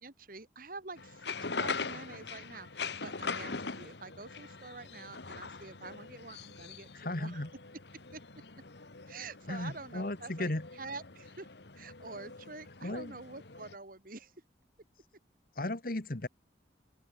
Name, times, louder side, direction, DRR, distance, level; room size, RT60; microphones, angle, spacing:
voice 1, 0.0-7.5 8.1-8.2 9.1-10.5 10.8-11.5 11.7-14.3, right 3 dB, 50° right, 2.4 m, -47 dB
sound 1, 1.0-13.7, left 4 dB, 70° left, 1.7 m, -42 dB
voice 2, 6.9-7.5 9.5-10.7 12.8-13.2 15.5-16.3, left 1 dB, 50° left, 1.7 m, -35 dB
open air
head